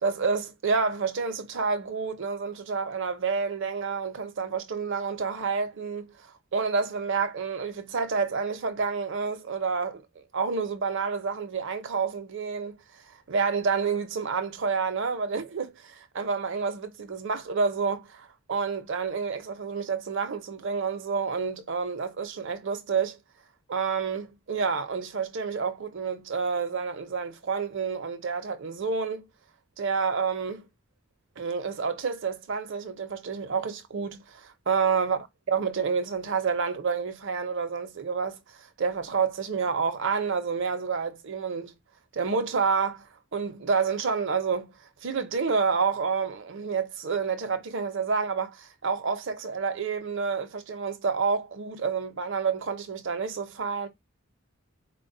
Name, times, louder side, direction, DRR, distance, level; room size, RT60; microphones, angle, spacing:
voice 1, 0.0-12.8 13.0-23.2 23.7-29.3 29.8-30.6 31.4-35.2 35.5-38.4 38.8-41.7 42.1-43.1 43.3-44.7 45.0-53.9, right 5 dB, 60° right, 0.6 m, -29 dB
4.3 x 2.2 x 2.6 m
head